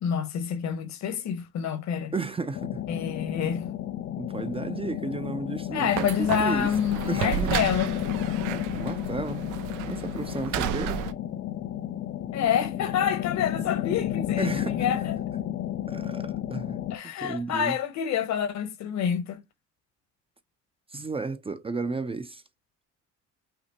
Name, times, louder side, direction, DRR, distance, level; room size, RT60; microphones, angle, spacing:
voice 1, 0.0-2.1 2.9-3.6 5.7-7.9 12.3-15.2 16.9-19.4, left 8 dB, 65° left, 1.2 m, -28 dB
voice 2, 2.1-2.8 4.2-5.9 6.2-6.7 7.1-7.6 8.7-9.6 9.8-11.1 14.4-14.8 15.9-16.8 17.0-17.8 20.9-22.4, right 3 dB, 20° right, 0.5 m, -33 dB
sound 1, 2.5-17.0, left 11 dB, 45° left, 0.6 m, -32 dB
sound 2, 5.9-11.1, right 10 dB, 85° right, 0.7 m, -32 dB
5.8 x 2.1 x 4.3 m
supercardioid pair, 85°, 30 cm